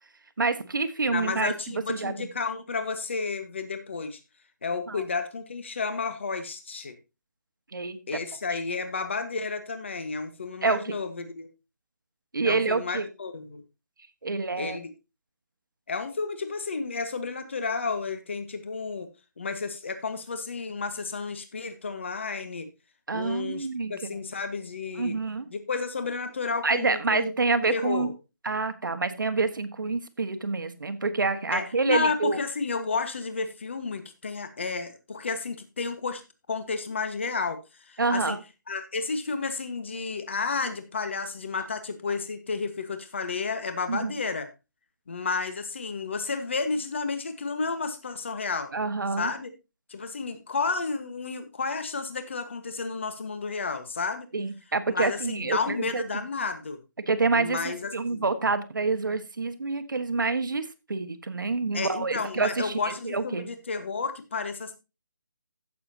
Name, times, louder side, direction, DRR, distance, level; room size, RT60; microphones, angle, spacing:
voice 1, 0.4-2.3 4.9-5.0 7.7-8.0 10.6-10.9 12.3-13.1 14.2-14.8 23.1-23.9 25.0-25.5 26.6-28.1 28.4-32.4 38.0-38.4 43.9-44.1 48.7-49.3 54.3-56.0 57.0-63.5, right 3 dB, 75° right, 10 dB, 1.5 m, -27 dB
voice 2, 1.1-4.2 4.6-7.0 8.1-11.5 12.4-13.6 14.6-14.9 15.9-19.1 19.4-22.7 23.1-25.2 25.5-27.3 27.7-28.1 31.5-36.2 36.5-37.6 37.8-38.4 38.7-44.5 45.1-48.7 49.2-49.5 49.9-54.3 54.9-56.8 57.3-58.2 61.7-64.7, left 4 dB, 35° left, 9 dB, 1.4 m, -31 dB
15.5 x 6.8 x 2.8 m, 0.27 s
hypercardioid pair, 180°, 11 cm